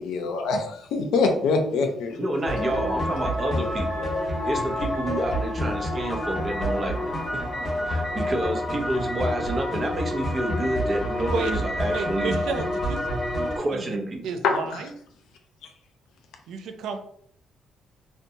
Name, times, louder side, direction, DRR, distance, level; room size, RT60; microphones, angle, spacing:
voice 1, 0.0-2.2 14.4-14.8, left 4 dB, 90° left, 4 dB, 0.5 m, -24 dB
voice 2, 2.2-12.4 13.6-14.2, right 1 dB, 30° right, 3 dB, 0.5 m, -29 dB
sound 1, 2.4-13.6, left 1 dB, 20° left, 0.9 m, -28 dB
voice 3, 11.9-13.0 13.4-14.0 14.2-14.9 16.5-17.0, right 5 dB, 85° right, 7 dB, 0.3 m, -32 dB
2.6 x 2.1 x 2.7 m, 0.63 s
cardioid pair, 125°, 0 cm